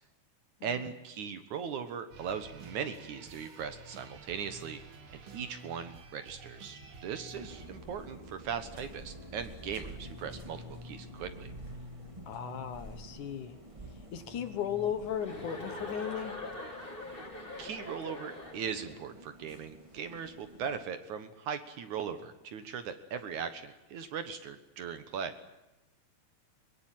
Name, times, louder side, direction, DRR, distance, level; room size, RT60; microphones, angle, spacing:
voice 1, 0.6-4.8 5.3-11.5 17.6-25.3, right 7 dB, 60° right, 10 dB, 2.4 m, -39 dB
sound 1, 2.1-7.7, right 3 dB, 45° right, 2.2 m, -51 dB
sound 2, 7.3-20.8, equal, 10° right, 1.6 m, -49 dB
voice 2, 12.3-13.6 14.1-16.4, left 9 dB, 65° left, 10 dB, 2.5 m, -36 dB
Chuckle chortle, 15.2-18.9, left 2 dB, 15° left, 3.5 m, -43 dB
23.0 x 22.0 x 9.2 m, 0.97 s
omnidirectional pair, 4.3 m